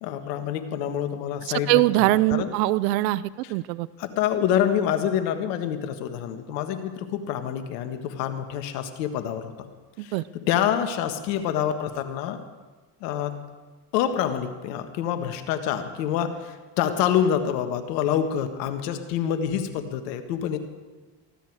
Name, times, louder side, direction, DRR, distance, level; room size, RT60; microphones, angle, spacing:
voice 1, 0.0-2.5 3.4-3.5 4.0-9.5 10.0-12.4 13.0-13.4 13.9-20.6, left 9 dB, 85° left, 8 dB, 1.7 m, -27 dB
voice 2, 1.7-3.9 10.0-10.2, right 18 dB, 85° right, 19 dB, 0.7 m, -22 dB
19.0 x 15.0 x 4.8 m, 1.3 s
hypercardioid pair, 70°, 49 cm